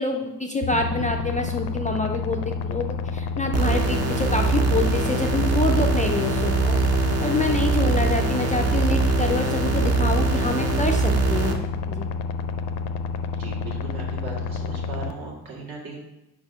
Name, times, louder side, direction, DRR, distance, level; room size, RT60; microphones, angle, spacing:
voice 1, 0.0-6.8 7.2-11.6 11.9-12.1, left 3 dB, 20° left, 2 dB, 0.3 m, -26 dB
sound 1, 0.6-15.1, left 5 dB, 75° left, 0.6 m, -29 dB
sound 2, 3.5-11.5, right 4 dB, 40° right, 0.8 m, -23 dB
voice 2, 13.4-16.0, right 3 dB, 65° right, -2 dB, 2.0 m, -37 dB
5.1 x 4.9 x 5.5 m, 0.94 s
cardioid pair, 140°, 40 cm